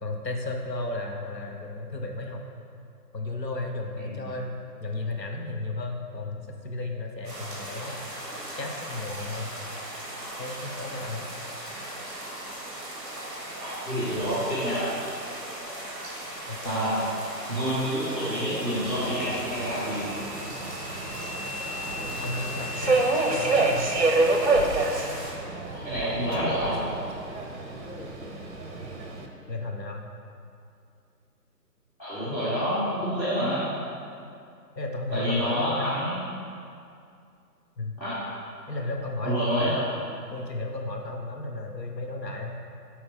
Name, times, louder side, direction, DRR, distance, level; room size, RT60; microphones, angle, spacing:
voice 1, 0.0-2.4 3.1-8.0 8.6-9.5 10.4-11.3 16.5-16.9 22.2-23.9 29.5-30.0 34.7-35.9 37.8-37.9 38.7-39.8 40.3-42.6, left 2 dB, 80° left, 2 dB, 1.1 m, -34 dB
sound 1, 7.2-25.3, right 1 dB, 15° right, 1.7 m, -38 dB
voice 2, 13.6-14.9 16.6-17.0 17.5-20.1 25.7-26.8 32.0-33.7 35.1-36.2 38.0-38.1 39.2-39.9, equal, 10° left, -13 dB, 1.3 m, -28 dB
Subway metro underground, 18.7-29.3, right 2 dB, 45° right, 0.8 m, -28 dB
6.6 x 4.3 x 5.6 m, 2.4 s
figure-of-eight pair, 150°, 50 cm